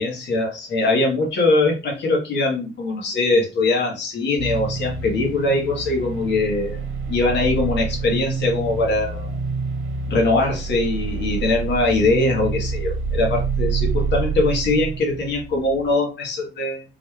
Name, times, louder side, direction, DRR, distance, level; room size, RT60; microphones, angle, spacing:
voice 1, 0.0-6.8 7.1-9.3 10.1-16.8, left 2 dB, 65° left, 0 dB, 1.3 m, -21 dB
sound 1, 4.4-15.9, right 4 dB, 70° right, 1.1 m, -27 dB
3.9 x 2.3 x 3.2 m, 0.32 s
cardioid pair, 90°, 20 cm